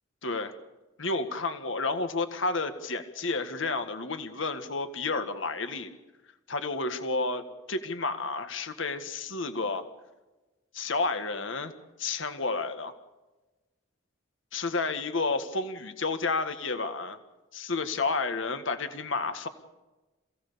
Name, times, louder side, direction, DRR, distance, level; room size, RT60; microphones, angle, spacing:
voice 1, 0.2-0.5 1.0-5.9 6.5-9.8 10.7-11.7 12.0-12.9 14.5-17.2 17.5-19.5, left 3 dB, 70° left, 9 dB, 1.8 m, -31 dB
27.5 x 17.5 x 7.0 m, 1.1 s
head